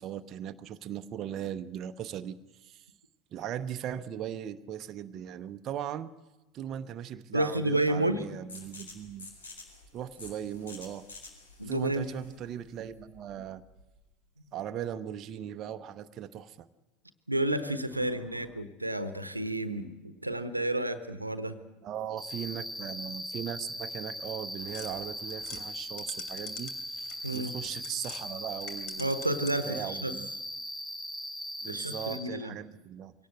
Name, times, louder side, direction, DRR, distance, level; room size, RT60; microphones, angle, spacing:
voice 1, 0.0-2.9 3.3-6.1 6.5-9.3 9.9-11.1 11.6-13.6 14.5-16.7 21.8-29.1 29.7-30.3 31.6-33.1, right 10 dB, 40° right, 9 dB, 0.8 m, -38 dB
voice 2, 7.3-8.2 11.6-12.1 17.3-21.6 27.2-27.5 29.0-30.2 31.7-32.6, right 1 dB, 90° right, 12 dB, 1.0 m, -31 dB
sound 1, 8.5-14.0, left 3 dB, 75° left, 4.4 m, -49 dB
Cricket, 22.2-32.2, equal, ahead, 3.3 m, -39 dB
sound 2, 24.7-28.2 28.6-29.8, left 5 dB, 50° left, 2.9 m, -47 dB
23.0 x 18.0 x 7.9 m, 1.1 s
figure-of-eight pair, 75°, 0 cm